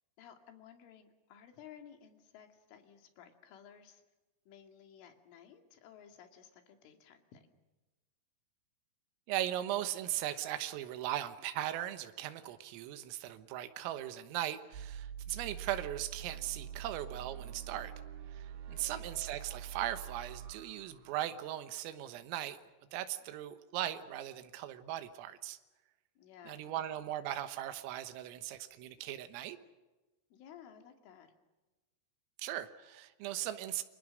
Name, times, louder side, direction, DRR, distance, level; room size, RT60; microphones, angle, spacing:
voice 1, 0.2-4.0 4.5-7.4 18.7-19.2 26.2-26.7 30.3-31.3, left 8 dB, 75° left, 6 dB, 4.7 m, -56 dB
voice 2, 9.3-17.9 18.3-22.6 22.9-25.6 26.5-29.6 32.4-33.8, right 13 dB, 85° right, 10 dB, 3.9 m, -38 dB
sound 1, 14.7-21.7, right 9 dB, 70° right, 3.8 m, -46 dB
29.5 x 24.5 x 6.4 m, 1.1 s
omnidirectional pair, 5.8 m